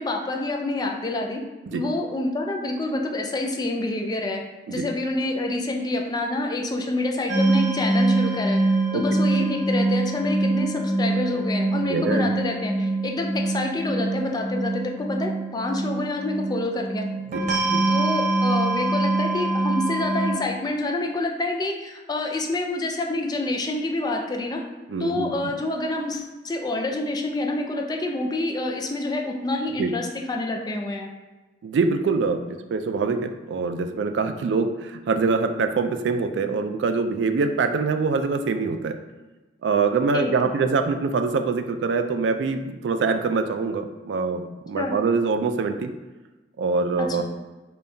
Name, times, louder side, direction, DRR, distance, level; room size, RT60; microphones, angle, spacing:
voice 1, 0.0-1.4 1.7-4.4 4.7-8.6 8.9-17.1 17.9-24.6 25.0-31.1 40.1-40.6 44.8-44.9 47.0-47.2, left 2 dB, 25° left, 2 dB, 0.4 m, -27 dB
sound 1, 7.3-20.3, right 2 dB, 45° right, 0.6 m, -24 dB
voice 2, 11.9-12.3 17.3-17.8 24.9-25.5 29.8-29.9 31.6-39.0 39.6-45.9 46.6-47.2, right 4 dB, 80° right, 7 dB, 0.3 m, -24 dB
5.2 x 2.3 x 2.6 m, 1.2 s
head